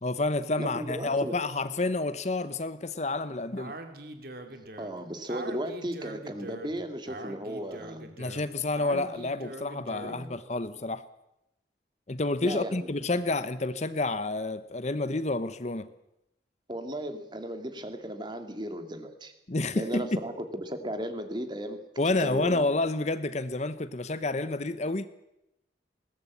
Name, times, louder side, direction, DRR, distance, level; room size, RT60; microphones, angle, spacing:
voice 1, 0.0-3.7 8.2-11.0 12.1-15.9 19.5-20.2 22.0-25.1, left 2 dB, 40° left, 13 dB, 0.9 m, -29 dB
voice 2, 0.6-1.4 4.8-8.1 8.9-9.1 10.0-10.3 12.4-12.9 16.7-19.3 19.7-22.7, equal, 25° right, 7 dB, 2.3 m, -36 dB
Speech, 3.6-10.3, right 2 dB, 55° right, 2.5 m, -43 dB
21.0 x 18.5 x 8.5 m, 0.88 s
head